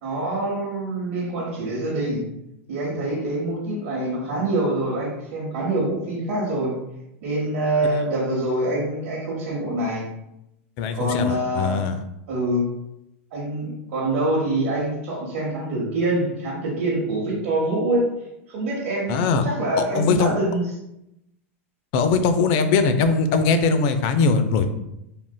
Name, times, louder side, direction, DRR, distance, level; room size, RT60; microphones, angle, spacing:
voice 1, 0.0-2.2 2.7-6.7 7.2-10.1 10.9-11.8 12.3-12.7 13.3-18.1 18.5-20.6, right 1 dB, 60° right, -7 dB, 1.0 m, -25 dB
voice 2, 10.8-12.0 19.1-19.4 19.8-20.3 21.9-24.7, left 4 dB, 50° left, 9 dB, 0.4 m, -20 dB
3.4 x 2.5 x 2.2 m, 0.85 s
hypercardioid pair, 110°, 7 cm